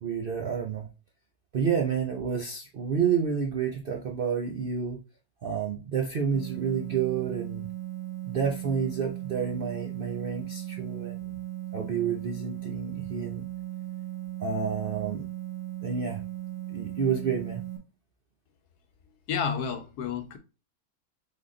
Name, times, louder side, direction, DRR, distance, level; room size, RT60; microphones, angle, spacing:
voice 1, 0.0-0.9 1.5-5.0 5.4-7.7 8.2-11.4 11.7-13.4 14.4-15.3 15.8-16.2 16.7-17.6, right 7 dB, 60° right, 0.5 m, -29 dB
sound 1, 6.3-17.8, right 14 dB, 75° right, 1.6 m, -37 dB
voice 2, 19.3-20.4, left 6 dB, 75° left, 1.3 m, -30 dB
3.8 x 3.5 x 3.7 m
omnidirectional pair, 1.7 m